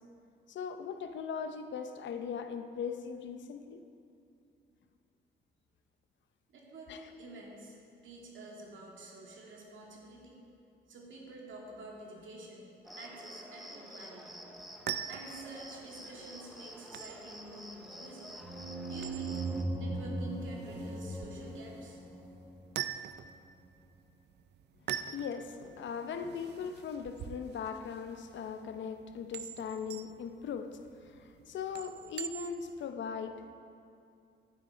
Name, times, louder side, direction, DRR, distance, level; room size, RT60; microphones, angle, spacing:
voice 1, 0.5-3.8 6.9-7.0 25.0-33.5, left 6 dB, 70° left, 0.7 m, -39 dB
voice 2, 6.5-7.7 8.0-10.4 10.9-12.7 13.0-14.4 15.1-18.3 18.9-19.4 19.8-22.0, right 2 dB, 75° right, 2.4 m, -49 dB
Cricket, 12.8-19.6, equal, ahead, 0.7 m, -49 dB
sound 1, 14.6-32.8, right 10 dB, 60° right, 0.4 m, -45 dB
sound 2, 18.4-22.9, right 2 dB, 20° right, 1.5 m, -38 dB
11.5 x 8.8 x 5.0 m
wide cardioid pair, 150°, 20 cm